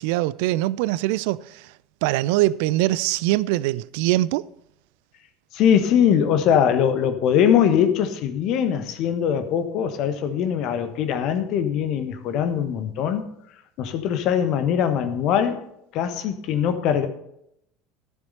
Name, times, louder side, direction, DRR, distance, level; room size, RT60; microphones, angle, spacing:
voice 1, 0.0-1.7 2.0-4.4, right 17 dB, 60° right, 0.3 m, -23 dB
voice 2, 5.5-13.3 13.8-15.7 15.9-17.1, left 8 dB, 50° left, 1.3 m, -21 dB
12.5 x 7.2 x 5.5 m
figure-of-eight pair, 65°, 0 cm